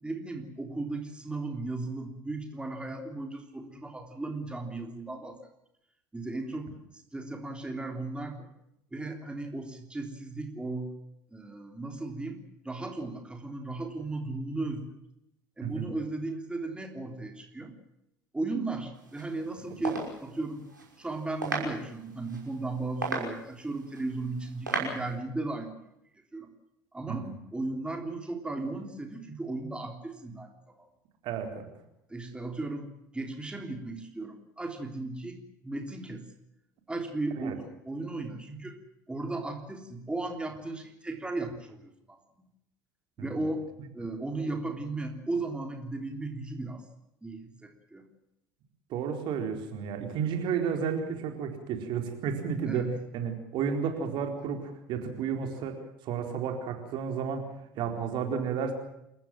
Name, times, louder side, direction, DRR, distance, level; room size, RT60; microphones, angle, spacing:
voice 1, 0.0-5.4 6.1-6.7 7.1-8.5 8.9-10.9 11.3-14.8 15.6-17.7 18.3-20.6 21.0-25.8 26.3-26.5 26.9-30.9 32.1-36.2 36.9-38.8 39.1-42.5 43.2-43.6 43.9-46.8 47.2-48.1 52.7-53.0, right 2 dB, 10° right, 4 dB, 3.5 m, -36 dB
sound 1, 18.9-25.1, right 3 dB, 85° right, 5.9 m, -38 dB
voice 2, 31.2-31.6 37.4-37.5 43.2-43.4 48.9-55.8 56.0-57.5 57.7-58.7, right 6 dB, 50° right, 5 dB, 4.2 m, -32 dB
28.5 x 15.0 x 7.6 m, 0.81 s
figure-of-eight pair, 65°, 10 cm